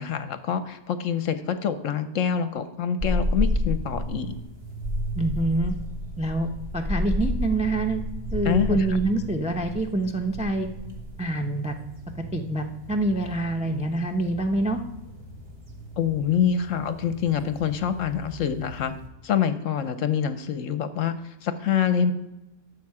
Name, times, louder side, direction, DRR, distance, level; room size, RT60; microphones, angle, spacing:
voice 1, 0.0-4.3 8.4-8.8 16.0-18.9 19.2-22.1, left 8 dB, 65° left, 11 dB, 0.9 m, -26 dB
sound 1, 3.0-19.1, left 1 dB, 40° right, 1.7 m, -32 dB
voice 2, 5.2-5.7 6.2-8.0 8.3-10.7 11.2-11.7 12.3-14.8, right 2 dB, 10° right, 3 dB, 0.3 m, -26 dB
11.5 x 7.2 x 4.8 m, 0.96 s
omnidirectional pair, 1.6 m